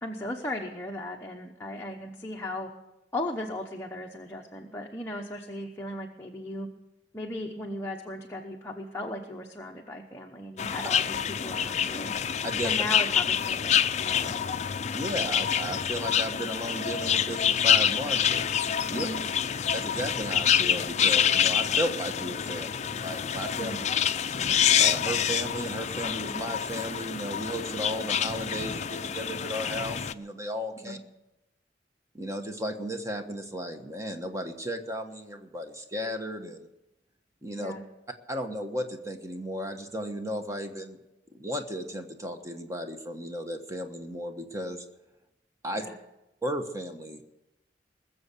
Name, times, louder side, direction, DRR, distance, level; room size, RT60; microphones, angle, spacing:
voice 1, 0.0-2.7 3.1-6.7 7.1-12.1 12.6-14.4 18.9-19.2 23.6-23.8 30.8-31.0 37.6-37.8 45.7-46.0, left 1 dB, 15° left, 0 dB, 0.9 m, -37 dB
sound 1, 10.6-30.1, left 8 dB, 40° left, 0.4 m, -27 dB
voice 2, 14.9-18.5 18.9-19.1 19.7-23.7 24.8-31.0 32.1-36.7 37.4-37.7 38.3-41.0 41.3-44.8 45.6-45.9 46.4-47.2, equal, 15° right, 5 dB, 1.2 m, -34 dB
20.5 x 7.2 x 8.3 m, 0.95 s
head